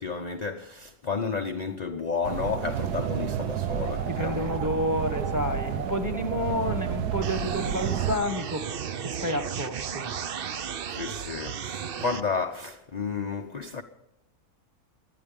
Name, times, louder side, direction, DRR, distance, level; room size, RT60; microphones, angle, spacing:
voice 1, 0.0-4.6 10.9-13.8, left 5 dB, 40° left, 0.7 m, -32 dB
sound 1, 2.2-8.2, right 9 dB, 90° right, 1.4 m, -30 dB
voice 2, 4.1-8.7 9.0-10.1, left 1 dB, 10° right, 1.4 m, -30 dB
sound 2, 7.2-12.2, right 7 dB, 50° right, 0.7 m, -34 dB
24.5 x 9.8 x 5.3 m
omnidirectional pair, 1.6 m